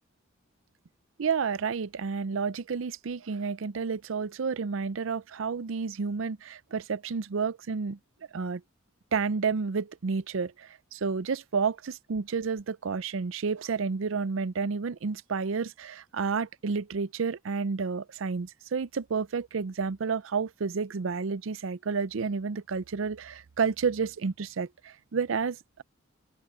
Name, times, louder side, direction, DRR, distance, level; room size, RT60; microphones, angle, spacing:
voice 1, 1.2-8.0 8.3-8.6 9.1-25.8, right 5 dB, 75° right, 0.5 m, -30 dB
open air
head